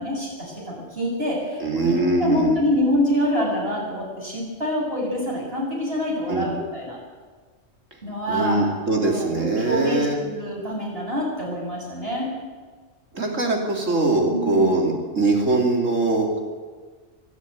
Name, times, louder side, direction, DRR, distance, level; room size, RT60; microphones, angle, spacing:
voice 1, 0.0-7.0 8.0-12.3 14.3-14.7, equal, 50° right, -3 dB, 7.3 m, -26 dB
voice 2, 1.6-2.6 6.3-6.5 8.3-10.2 13.1-16.4, right 2 dB, 80° right, 1 dB, 3.5 m, -22 dB
24.0 x 12.5 x 9.4 m, 1.5 s
omnidirectional pair, 1.3 m